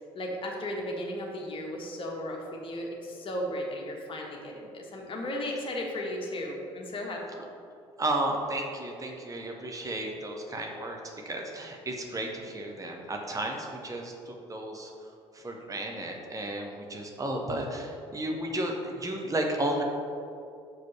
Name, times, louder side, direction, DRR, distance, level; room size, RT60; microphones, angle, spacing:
voice 1, 0.1-7.4, left 1 dB, 35° left, 0 dB, 1.5 m, -35 dB
voice 2, 8.0-11.0 11.2-14.9 15.3-19.8, right 1 dB, 25° right, 1 dB, 1.2 m, -33 dB
6.2 x 5.3 x 5.5 m, 2.5 s
figure-of-eight pair, 50°, 15 cm